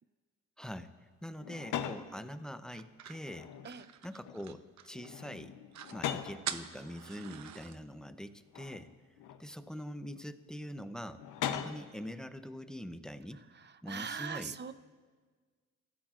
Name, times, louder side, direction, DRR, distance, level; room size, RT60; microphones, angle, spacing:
voice 1, 0.6-0.9 1.2-3.5 4.0-5.6 5.9-8.9 9.4-11.2 11.5-13.4 13.8-14.5, equal, ahead, 9 dB, 0.8 m, -44 dB
sound 1, 1.4-2.1 3.1-3.9 4.2-4.6 4.9-6.4 7.3-7.4 8.5-9.4 11.2-11.9, left 10 dB, 85° left, 0.9 m, -40 dB
sound 2, 2.7-5.1 5.4-5.5 5.7-6.0 6.4-7.8, right 9 dB, 65° right, 0.8 m, -44 dB
voice 2, 13.5-14.7, right 6 dB, 35° right, 12 dB, 0.8 m, -41 dB
24.5 x 15.0 x 2.5 m, 1.5 s
cardioid pair, 90°, 30 cm